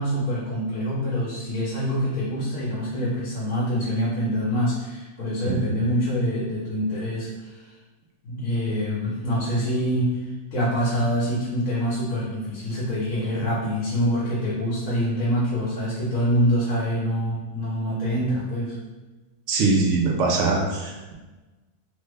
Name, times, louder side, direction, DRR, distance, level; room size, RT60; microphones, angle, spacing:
voice 1, 0.0-7.8 8.2-18.8, equal, 70° left, -7 dB, 1.2 m, -25 dB
voice 2, 5.4-5.8 19.5-21.1, right 3 dB, 65° right, 0 dB, 0.8 m, -23 dB
3.2 x 2.1 x 3.3 m, 1.2 s
omnidirectional pair, 1.5 m